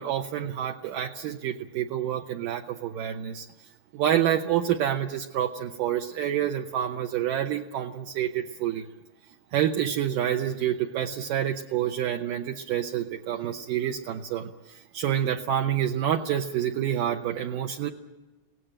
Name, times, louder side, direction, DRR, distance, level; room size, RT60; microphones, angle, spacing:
voice 1, 0.0-3.5 3.9-8.9 9.5-17.9, right 10 dB, 70° right, 3 dB, 2.3 m, -28 dB
23.5 x 18.0 x 8.8 m, 1.2 s
omnidirectional pair, 4.3 m